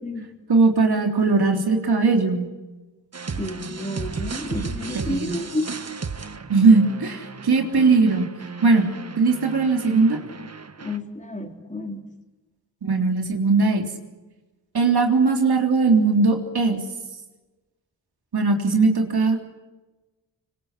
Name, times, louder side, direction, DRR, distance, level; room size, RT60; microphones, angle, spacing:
voice 1, 0.5-2.5 4.9-5.4 6.5-8.3 8.6-8.9 9.2-10.2 12.8-13.9 14.7-16.8 18.3-19.4, right 4 dB, 65° right, 3 dB, 3.7 m, -19 dB
sound 1, 3.1-11.0, right 5 dB, 35° right, 1.5 m, -35 dB
voice 2, 3.4-5.7 10.8-12.0, left 2 dB, 15° left, 3 dB, 4.0 m, -30 dB
25.5 x 25.0 x 8.4 m, 1.1 s
cardioid pair, 75°, 42 cm